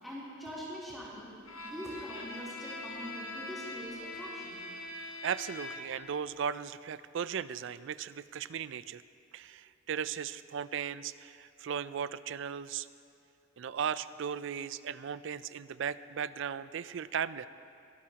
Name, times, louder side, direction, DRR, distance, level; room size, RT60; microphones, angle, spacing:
voice 1, 0.0-1.3 1.6-4.6, equal, ahead, -9 dB, 3.4 m, -43 dB
Bowed string instrument, 1.4-6.1, left 2 dB, 85° left, 1.4 m, -43 dB
voice 2, 5.2-9.0 9.3-12.9 13.6-17.5, right 7 dB, 60° right, 15 dB, 0.4 m, -37 dB
23.0 x 13.5 x 2.9 m, 2.6 s
head